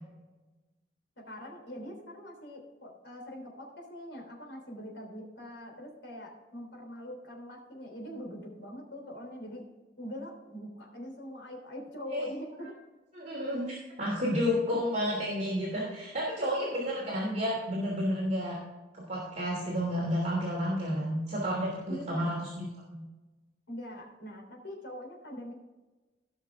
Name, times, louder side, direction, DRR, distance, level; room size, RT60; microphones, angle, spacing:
voice 1, 1.2-9.6 10.0-12.7 14.6-14.8 21.9-22.3 23.7-25.5, equal, 90° left, 1 dB, 3.4 m, -43 dB
voice 2, 13.1-18.6 18.9-23.0, equal, 40° right, -6 dB, 2.9 m, -31 dB
17.5 x 6.1 x 3.6 m, 1.2 s
head